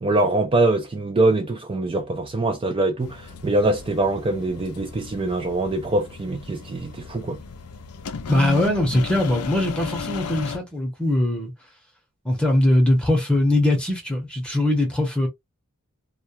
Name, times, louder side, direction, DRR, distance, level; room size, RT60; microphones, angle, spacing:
voice 1, 0.0-7.4, right 2 dB, 25° right, 0.3 m, -23 dB
sound 1, 3.0-10.6, left 5 dB, 85° left, 0.5 m, -35 dB
voice 2, 8.3-11.5 12.2-15.3, left 1 dB, 5° left, 0.8 m, -21 dB
2.2 x 2.1 x 2.7 m
head